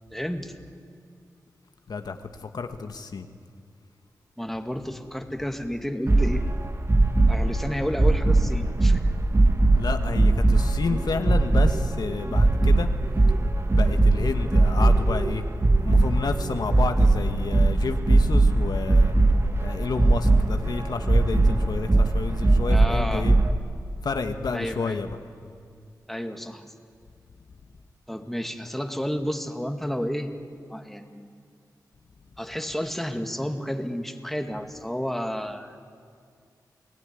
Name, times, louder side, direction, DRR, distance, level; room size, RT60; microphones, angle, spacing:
voice 1, 0.1-0.5 4.4-6.5 7.3-9.0 22.7-23.2 24.5-25.0 26.1-26.7 28.1-30.3 30.7-31.3 32.4-35.8, equal, 5° left, 6 dB, 2.1 m, -31 dB
voice 2, 1.9-3.3 9.7-12.9 13.7-15.5 15.8-19.1 19.6-23.3 24.0-25.2, left 4 dB, 70° left, 7 dB, 1.4 m, -30 dB
sound 1, 6.1-23.5, right 2 dB, 35° right, 1.7 m, -21 dB
29.0 x 18.0 x 9.8 m, 2.2 s
cardioid pair, 55°, 7 cm